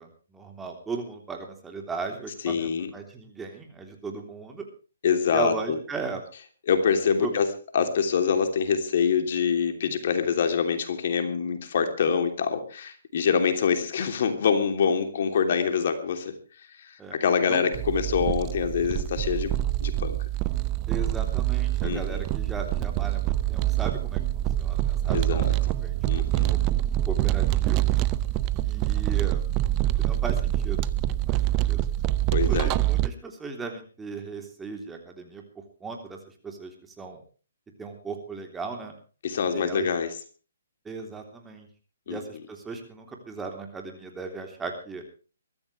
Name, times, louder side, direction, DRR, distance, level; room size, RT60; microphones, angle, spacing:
voice 1, 0.0-4.6 5.3-6.2 7.2-7.3 17.0-17.2 17.5-17.6 18.4-18.5 20.9-26.0 26.5-26.6 27.1-27.9 28.6-29.4 30.0-30.9 31.3-31.4 31.7-31.9 32.5-35.4 35.8-36.2 36.4-37.2 37.8-38.9 39.5-39.9 40.8-41.7 42.1-45.0, right 4 dB, 10° right, 3 dB, 3.3 m, -37 dB
voice 2, 2.4-2.9 5.0-5.8 6.7-16.3 16.8-20.2 21.8-22.2 25.1-25.5 26.0-26.6 32.3-32.7 39.2-40.1 42.1-42.2, left 6 dB, 55° left, 7 dB, 3.0 m, -25 dB
sound 1, 17.7-33.1, right 14 dB, 25° right, 0.8 m, -25 dB
23.0 x 14.0 x 3.3 m, 0.36 s
hypercardioid pair, 140°, 0 cm